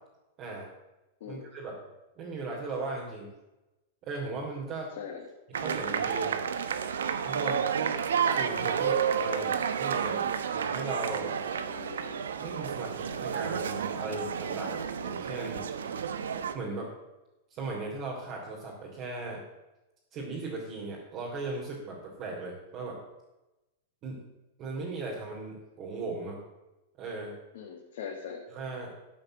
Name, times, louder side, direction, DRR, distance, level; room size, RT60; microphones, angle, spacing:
voice 1, 1.3-1.8 2.2-3.3 4.0-4.9 5.5-6.3 7.2-7.6 8.3-10.2 10.5-11.3 12.4-15.7 16.5-16.9 17.5-19.4 20.1-23.0 24.0-24.2 24.6-26.4 27.0-27.3 28.5-28.9, right 3 dB, 40° right, -4 dB, 3.1 m, -37 dB
voice 2, 4.9-5.3 11.6-12.2 27.5-28.4, left 7 dB, 65° left, 0 dB, 1.8 m, -41 dB
sound 1, 5.5-16.5, right 7 dB, 85° right, 0.9 m, -31 dB
13.0 x 5.4 x 7.6 m, 1.0 s
hypercardioid pair, 125°, 0 cm